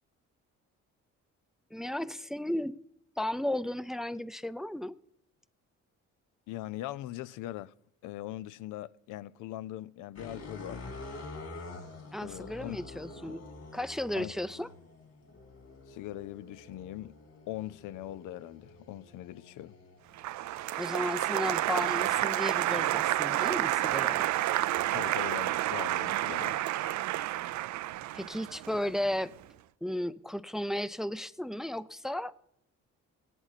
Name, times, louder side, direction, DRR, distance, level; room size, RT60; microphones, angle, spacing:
voice 1, 1.7-2.8 3.2-5.0 12.1-13.4 13.7-14.7 20.8-24.3 28.1-29.3 29.8-32.3, left 1 dB, ahead, 0.4 m, -34 dB
voice 2, 6.5-7.7 8.0-10.9 12.2-12.8 13.3-13.4 14.1-14.3 15.9-17.2 17.5-19.8 24.9-26.6 28.8-28.9, left 14 dB, 90° left, 0.5 m, -41 dB
sound 1, 10.1-26.5 27.1-29.6, left 2 dB, 55° left, 3.1 m, -50 dB
Applause, 20.2-29.3, right 15 dB, 70° right, 0.5 m, -30 dB
17.5 x 11.0 x 4.1 m
cardioid pair, 90°, 30 cm